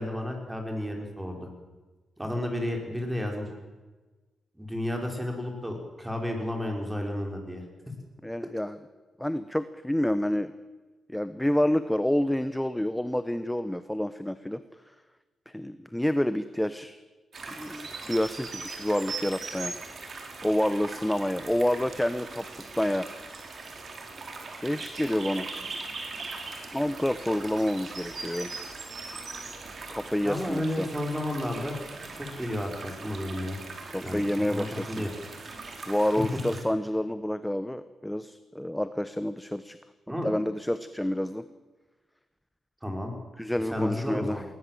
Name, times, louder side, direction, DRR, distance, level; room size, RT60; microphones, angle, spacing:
voice 1, 0.0-1.5 2.2-3.5 4.6-7.6 30.2-31.8 32.1-33.6 34.0-35.1 40.1-40.3 42.8-43.1 43.7-44.4, left 1 dB, 10° right, 2 dB, 5.6 m, -32 dB
voice 2, 8.2-8.8 9.2-10.5 11.1-14.6 15.5-17.0 17.6-19.7 20.4-23.1 24.6-25.5 26.7-28.5 29.9-30.9 33.9-35.1 35.9-39.8 40.2-41.4 43.4-44.4, left 1 dB, 5° left, 12 dB, 0.9 m, -28 dB
sound 1, 17.3-36.6, right 3 dB, 50° right, 4.2 m, -40 dB
19.5 x 19.5 x 7.8 m, 1.2 s
cardioid pair, 80°, 0 cm